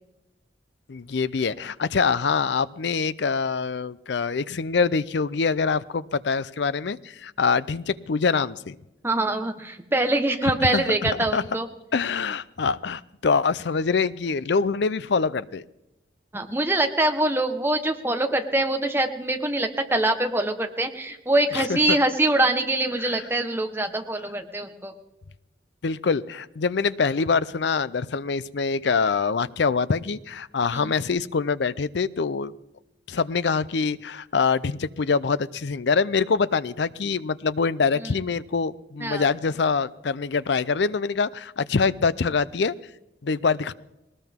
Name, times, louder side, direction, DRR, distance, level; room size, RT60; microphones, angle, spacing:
voice 1, 0.9-8.8 10.4-11.4 11.9-15.6 21.5-22.0 23.0-23.2 25.8-32.5 33.1-42.7 43.2-43.7, left 5 dB, 65° left, 18 dB, 0.5 m, -25 dB
voice 2, 9.0-11.7 16.3-24.9 30.7-30.9 39.0-39.3, right 2 dB, 10° right, 5 dB, 1.2 m, -24 dB
20.0 x 19.0 x 3.6 m, 0.94 s
head